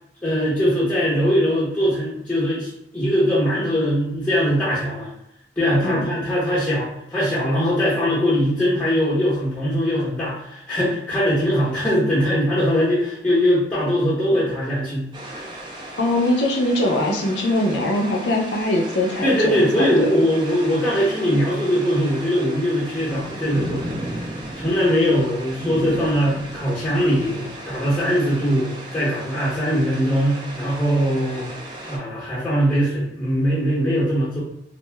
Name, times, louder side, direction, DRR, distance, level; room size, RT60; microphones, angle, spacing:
voice 1, 0.2-5.1 5.6-15.1 15.3-15.5 19.2-23.9 24.5-31.5 31.9-34.4, equal, 10° left, -9 dB, 0.9 m, -21 dB
sound 1, 15.1-32.0, right 1 dB, 25° right, 0.5 m, -35 dB
voice 2, 16.0-20.1, left 1 dB, 80° left, 1 dB, 0.6 m, -22 dB
2.5 x 2.1 x 3.3 m, 0.80 s
head